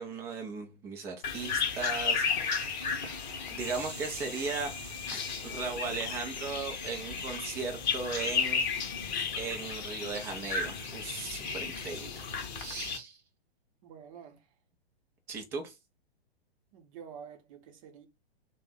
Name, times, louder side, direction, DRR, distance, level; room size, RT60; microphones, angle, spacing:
voice 1, 0.0-2.4 3.0-4.7 5.1-8.9 9.3-12.3 12.5-13.2 15.3-15.8, right 4 dB, 10° right, 0.3 m, -37 dB
sound 1, 1.2-13.0, left 6 dB, 45° left, 0.8 m, -34 dB
sound 2, 3.6-8.4, right 7 dB, 70° right, 0.7 m, -50 dB
voice 2, 13.8-14.5 16.7-18.1, right 7 dB, 35° right, 0.7 m, -48 dB
3.2 x 2.1 x 3.6 m
figure-of-eight pair, 115°, 31 cm